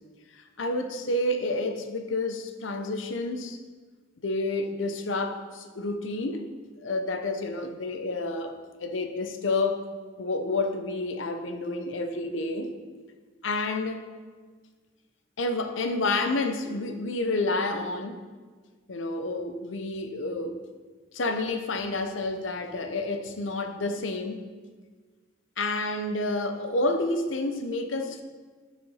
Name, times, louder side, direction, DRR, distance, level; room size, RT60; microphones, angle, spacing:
voice 1, 0.4-3.6 4.2-6.5 6.8-9.9 10.2-12.7 13.4-14.1 15.4-18.2 18.9-20.6 21.1-24.4 25.6-28.2, left 2 dB, 80° left, 0.8 m, -29 dB
9.4 x 5.1 x 5.6 m
head